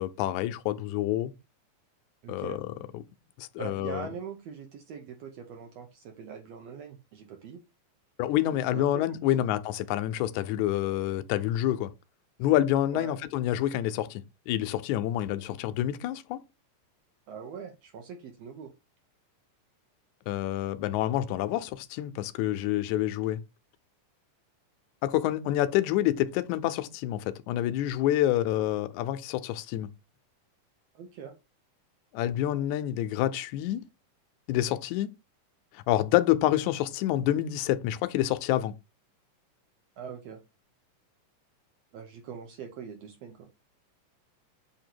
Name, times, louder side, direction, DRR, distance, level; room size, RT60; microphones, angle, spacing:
voice 1, 0.0-1.3 2.3-3.0 3.4-4.1 8.2-11.9 12.4-16.4 20.3-23.4 25.0-29.9 32.1-33.8 34.5-35.1 35.7-38.7, left 13 dB, 80° left, 1.7 m, -28 dB
voice 2, 2.2-2.6 3.6-7.6 8.7-9.0 9.4-9.5 12.9-13.1 17.3-18.7 30.9-31.4 40.0-40.4 41.9-43.5, right 6 dB, 75° right, 1.5 m, -42 dB
7.8 x 2.7 x 4.5 m
omnidirectional pair, 3.8 m